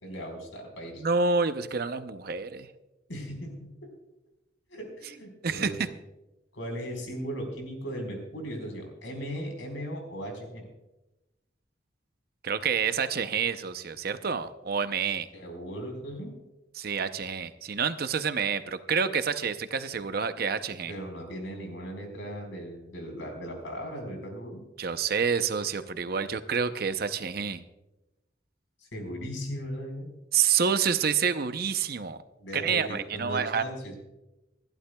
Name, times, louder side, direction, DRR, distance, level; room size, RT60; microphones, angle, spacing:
voice 1, 0.0-1.0 3.1-3.7 4.7-5.8 6.5-10.6 15.3-16.3 20.9-24.6 28.8-30.1 32.4-34.0, equal, 90° left, 3 dB, 4.4 m, -37 dB
voice 2, 1.0-2.7 5.4-5.9 12.4-15.3 16.8-20.9 24.8-27.6 30.3-32.2 32.5-33.6, right 6 dB, 55° right, 10 dB, 0.6 m, -28 dB
27.5 x 12.0 x 2.3 m, 1.0 s
head